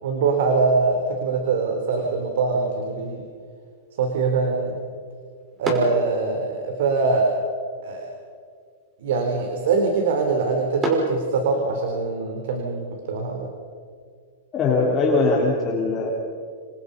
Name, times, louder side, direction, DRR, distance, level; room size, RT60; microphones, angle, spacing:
voice 1, 0.0-3.3 4.0-4.8 5.6-7.4 7.8-8.1 9.0-13.5, right 4 dB, 70° right, 3 dB, 4.0 m, -23 dB
sound 1, 1.9-11.9, right 1 dB, 15° right, 5.7 m, -37 dB
voice 2, 14.5-16.1, left 3 dB, 25° left, -3 dB, 4.0 m, -21 dB
28.0 x 26.5 x 5.5 m, 2.1 s
hypercardioid pair, 145°, 0 cm